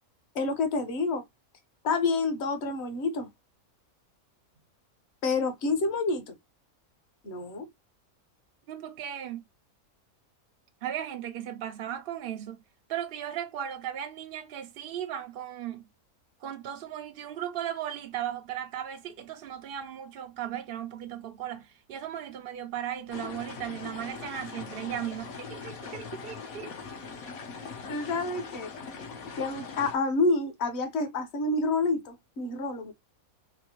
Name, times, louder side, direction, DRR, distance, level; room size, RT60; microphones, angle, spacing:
voice 1, 0.3-1.2 1.8-3.3 5.2-6.4 7.2-7.7 27.9-28.7 29.4-32.9, left 3 dB, 55° left, 1.1 m, -28 dB
voice 2, 8.7-9.4 10.8-12.6 12.9-15.8 16.4-26.7, right 10 dB, 70° right, 0.5 m, -36 dB
sound 1, 23.1-30.0, left 5 dB, 70° left, 1.3 m, -41 dB
4.2 x 2.0 x 2.9 m
omnidirectional pair, 1.5 m